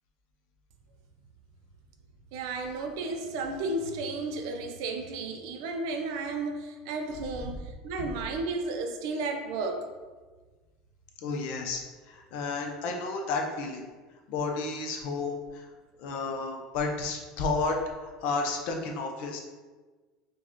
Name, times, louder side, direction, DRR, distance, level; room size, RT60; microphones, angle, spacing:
voice 1, 2.3-9.8, right 3 dB, 75° right, 4 dB, 0.5 m, -33 dB
voice 2, 11.2-11.8 12.1-13.9 14.3-15.7 16.0-19.4, left 3 dB, 65° left, 2 dB, 0.6 m, -32 dB
4.8 x 2.3 x 2.9 m, 1.3 s
supercardioid pair, 125°, 2 cm